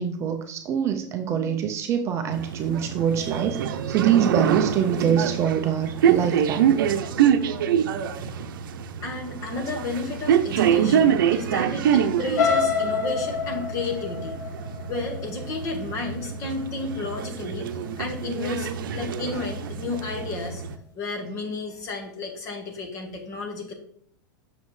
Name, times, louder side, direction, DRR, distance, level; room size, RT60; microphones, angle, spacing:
voice 1, 0.0-6.8, right 8 dB, 25° right, 5 dB, 0.5 m, -25 dB
sound 1, 2.3-20.8, right 8 dB, 85° right, 0.6 m, -25 dB
voice 2, 9.0-14.3 14.9-20.6 20.9-23.7, left 3 dB, 30° left, 3 dB, 1.5 m, -32 dB
sound 2, 12.4-16.3 16.8-17.1 17.5-17.6, left 6 dB, 50° left, 2.0 m, -27 dB
7.5 x 6.4 x 3.2 m, 0.65 s
supercardioid pair, 160°, 11 cm